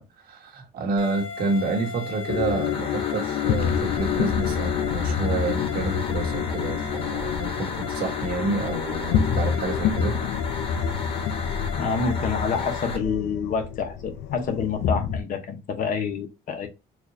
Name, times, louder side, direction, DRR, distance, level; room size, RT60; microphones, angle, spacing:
voice 1, 0.0-10.2, right 3 dB, 65° right, 1.3 m, -29 dB
sound 1, 1.0-13.0, left 3 dB, 35° left, 1.0 m, -35 dB
sound 2, 2.3-15.2, left 7 dB, 80° left, 0.5 m, -27 dB
voice 2, 11.8-16.7, left 5 dB, 55° left, 0.9 m, -27 dB
4.4 x 2.4 x 2.6 m
cardioid pair, 110°, 17 cm